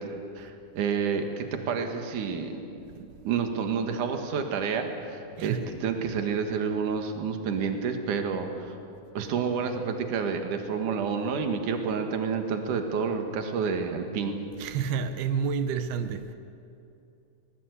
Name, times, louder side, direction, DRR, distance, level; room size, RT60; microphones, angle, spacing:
voice 1, 0.0-2.6 3.2-8.8 9.1-14.4, right 6 dB, 60° right, 3.0 m, -29 dB
voice 2, 14.6-16.3, right 6 dB, 85° right, 2.8 m, -29 dB
23.0 x 20.0 x 8.3 m
omnidirectional pair, 4.4 m